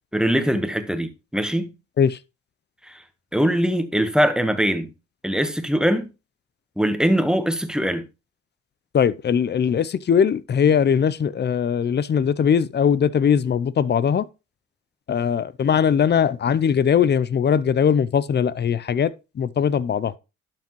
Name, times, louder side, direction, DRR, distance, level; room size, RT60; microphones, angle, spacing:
voice 1, 0.1-1.7 2.9-3.0 3.3-4.9 5.2-6.1 6.8-8.1, equal, ahead, 1.1 m, -22 dB
voice 2, 8.9-14.2 15.1-19.1 19.4-20.1, left 7 dB, 35° left, 0.5 m, -20 dB
12.0 x 5.8 x 3.0 m
cardioid pair, 90°, 30 cm